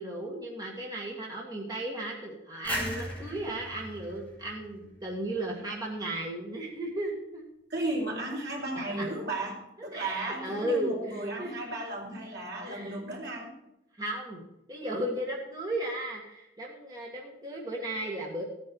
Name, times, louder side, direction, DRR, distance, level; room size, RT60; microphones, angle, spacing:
voice 1, 0.0-7.4 8.9-9.3 9.9-11.8 12.7-13.0 14.0-14.4 14.7-18.4, right 1 dB, 20° right, -2 dB, 1.8 m, -35 dB
sound 1, 2.6-5.4, left 1 dB, 10° left, 3.8 m, -38 dB
voice 2, 7.7-13.5, right 2 dB, 70° right, -2 dB, 3.4 m, -35 dB
15.5 x 9.3 x 4.6 m, 0.87 s
head